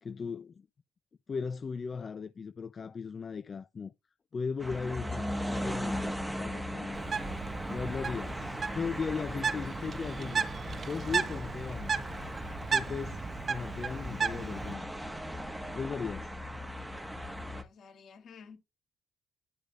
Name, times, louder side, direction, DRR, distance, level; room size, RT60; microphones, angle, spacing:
voice 1, 0.0-0.7 1.3-3.9 4.3-7.0 7.7-10.5 10.9-11.9 12.7-13.2 13.5-15.1 15.7-16.4, left 5 dB, 40° left, 0.6 m, -37 dB
sound 1, 4.6-17.6, equal, 5° right, 1.5 m, -38 dB
Bird, 6.9-14.7, right 5 dB, 45° right, 0.7 m, -35 dB
voice 2, 17.4-18.6, left 6 dB, 65° left, 3.2 m, -51 dB
12.0 x 5.1 x 2.5 m
cardioid pair, 90°, 0 cm